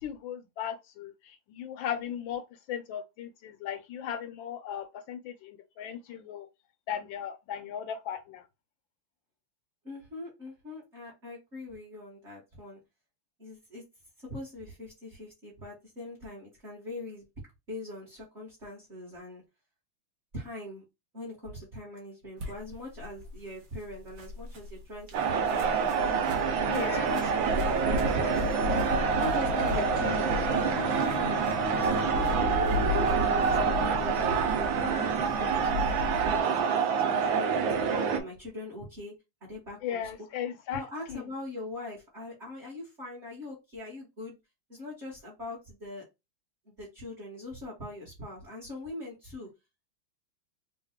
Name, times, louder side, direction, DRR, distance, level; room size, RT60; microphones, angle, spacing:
voice 1, 0.0-6.5 6.9-8.4 26.7-27.1 39.8-40.8 41.1-41.2, left 9 dB, 75° left, 1.2 m, -37 dB
voice 2, 9.8-12.8 13.4-13.8 14.2-17.2 17.7-19.4 20.3-20.8 21.1-28.8 29.2-31.3 31.7-39.1 39.4-40.0 40.7-44.4 44.7-46.0 46.6-49.5, left 2 dB, 35° right, 1.5 m, -42 dB
sound 1, 22.4-36.4, left 3 dB, 55° right, 1.5 m, -36 dB
sound 2, 25.1-38.2, right 6 dB, 75° right, 1.4 m, -27 dB
sound 3, 27.1-34.5, left 6 dB, 60° left, 0.9 m, -39 dB
3.7 x 2.5 x 3.5 m
omnidirectional pair, 2.3 m